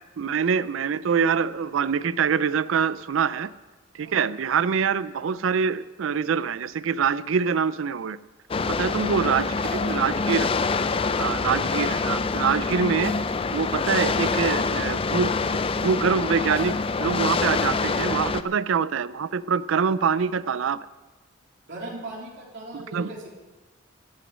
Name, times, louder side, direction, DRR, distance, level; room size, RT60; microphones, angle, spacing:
voice 1, 0.0-3.5 3.9-8.2 8.7-10.5 11.2-13.1 13.5-20.9 22.7-23.1, right 6 dB, 80° right, 16 dB, 0.4 m, -25 dB
sound 1, 8.5-18.4, left 4 dB, 30° left, 0.4 m, -26 dB
voice 2, 9.2-10.2 11.1-11.4 21.7-23.3, right 2 dB, 60° right, -3 dB, 3.6 m, -39 dB
14.0 x 6.1 x 10.0 m, 1.2 s
head